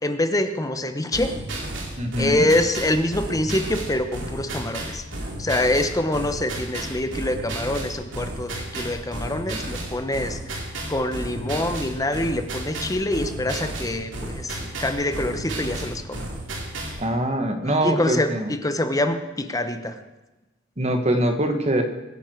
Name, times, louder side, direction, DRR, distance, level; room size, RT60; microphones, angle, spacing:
voice 1, 0.0-1.3 2.2-5.0 5.4-16.2 17.7-19.9, left 1 dB, 20° left, 9 dB, 1.0 m, -25 dB
sound 1, 1.1-17.0, right 1 dB, 80° right, 2.8 m, -33 dB
voice 2, 2.0-2.5 17.0-18.5 20.8-21.8, right 1 dB, 35° right, 6 dB, 1.7 m, -23 dB
23.0 x 9.9 x 4.6 m, 1.1 s
head